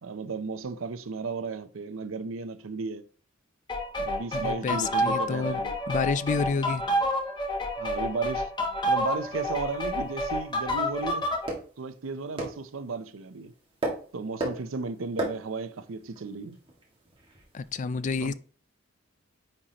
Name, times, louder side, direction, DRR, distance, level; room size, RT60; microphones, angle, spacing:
voice 1, 0.0-3.0 4.0-5.8 6.8-7.0 7.8-8.5 8.8-11.3 11.8-13.5 14.1-16.6 18.2-18.3, right 4 dB, 85° right, 0.6 m, -34 dB
sound 1, 3.7-11.5, equal, 25° left, 1.2 m, -29 dB
voice 2, 4.3-5.6 5.9-6.8 17.5-18.3, left 5 dB, 40° left, 0.4 m, -29 dB
Plastic bottle hit, 8.9-17.8, right 1 dB, 25° right, 1.8 m, -39 dB
9.7 x 4.2 x 2.9 m
head